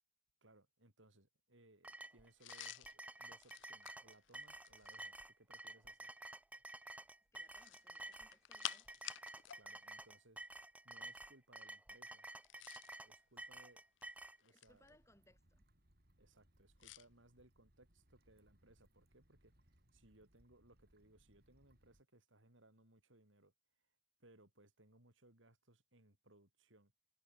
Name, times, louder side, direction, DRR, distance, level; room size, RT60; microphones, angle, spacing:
voice 1, 0.4-6.1 9.5-10.4 10.8-12.3 13.0-13.8 14.4-15.0 16.2-23.5 24.2-26.9, right 1 dB, 80° right, 6.2 m, -67 dB
sound 1, 1.8-14.4, right 2 dB, 5° right, 0.5 m, -52 dB
drugs foley, 2.4-5.1 7.5-9.6 9.9-10.1 12.3-13.0 13.8-14.9 16.8-17.1, left 13 dB, 70° left, 0.6 m, -51 dB
voice 2, 7.3-8.9 13.1-13.2 14.3-15.7, left 1 dB, 15° left, 7.0 m, -71 dB
sound 2, 14.7-22.0, equal, 50° right, 6.1 m, -73 dB
head